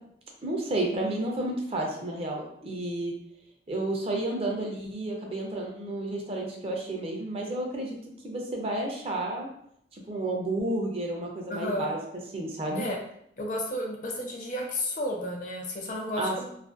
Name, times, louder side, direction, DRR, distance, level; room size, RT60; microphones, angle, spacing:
voice 1, 0.4-3.1 3.7-8.0 8.2-9.5 9.9-12.0 12.3-12.8 16.2-16.4, right 1 dB, 35° right, 0 dB, 0.4 m, -31 dB
voice 2, 11.5-11.9 12.7-13.0 13.4-16.4, left 1 dB, 45° left, 0 dB, 0.5 m, -32 dB
2.4 x 2.1 x 2.4 m, 0.71 s
head